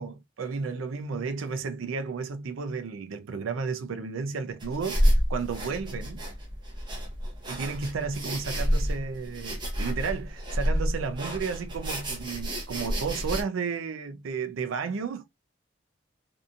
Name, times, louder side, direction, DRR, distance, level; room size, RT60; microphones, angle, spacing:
voice 1, 0.0-6.2 7.5-15.3, right 5 dB, 85° right, 0.4 m, -33 dB
sound 1, 4.6-13.4, equal, 25° right, 0.7 m, -29 dB
2.7 x 2.5 x 2.4 m
head